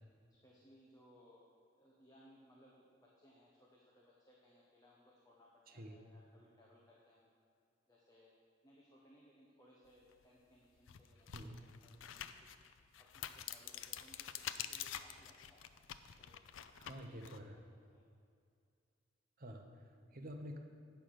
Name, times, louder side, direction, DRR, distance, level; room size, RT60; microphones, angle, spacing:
voice 1, 0.4-1.5 1.8-7.3 7.9-8.3 8.6-12.5 13.0-15.6 16.2-16.4 16.8-17.2 17.5-18.0, equal, 20° left, -4 dB, 1.1 m, -65 dB
voice 2, 5.7-6.0 11.3-11.8 16.7-17.6 19.4-20.6, equal, 50° right, 3 dB, 0.9 m, -50 dB
sound 1, 10.1-10.2 10.8-17.4, left 10 dB, 85° left, 0.4 m, -47 dB
8.8 x 5.7 x 6.4 m, 2.3 s
head